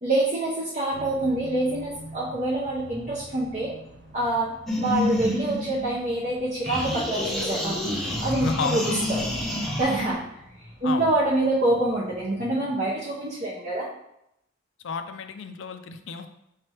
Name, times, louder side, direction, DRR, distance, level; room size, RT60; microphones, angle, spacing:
voice 1, 0.0-3.7 4.1-7.8 8.2-9.2 9.8-10.3 10.8-13.9, right 2 dB, 35° right, -6 dB, 0.7 m, -26 dB
sound 1, 0.9-12.4, equal, 60° right, 1.2 m, -47 dB
sound 2, 4.7-6.3 6.7-10.1, left 1 dB, ahead, 0.6 m, -28 dB
voice 2, 8.4-9.1 10.8-11.1 14.8-16.3, left 4 dB, 65° left, 8 dB, 0.4 m, -31 dB
5.5 x 3.4 x 2.9 m, 0.80 s
head